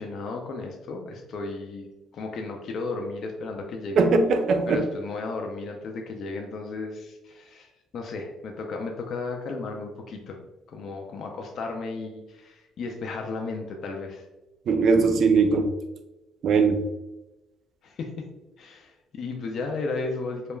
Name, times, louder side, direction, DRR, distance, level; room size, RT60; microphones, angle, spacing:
voice 1, 0.0-1.9 2.1-4.1 4.7-10.4 10.7-14.2 17.8-18.3 18.6-20.6, left 3 dB, 50° left, 2 dB, 0.3 m, -34 dB
voice 2, 4.0-4.8 14.7-15.7 16.4-16.8, right 4 dB, 50° right, 7 dB, 0.3 m, -20 dB
2.2 x 2.1 x 3.0 m, 1.0 s
cardioid pair, 145°, 0 cm